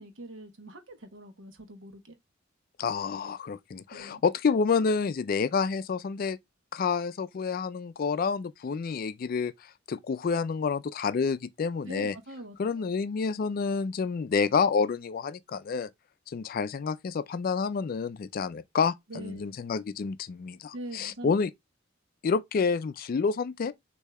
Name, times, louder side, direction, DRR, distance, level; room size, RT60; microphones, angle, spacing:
voice 1, 0.0-2.2 3.9-4.2 11.8-12.9 19.1-19.5 20.7-21.4, right 1 dB, 75° right, 1.0 m, -43 dB
voice 2, 2.8-6.4 6.7-9.5 9.9-12.1 12.6-15.9 16.3-21.5 22.2-23.7, left 5 dB, 45° left, 0.3 m, -28 dB
6.5 x 2.7 x 2.3 m
head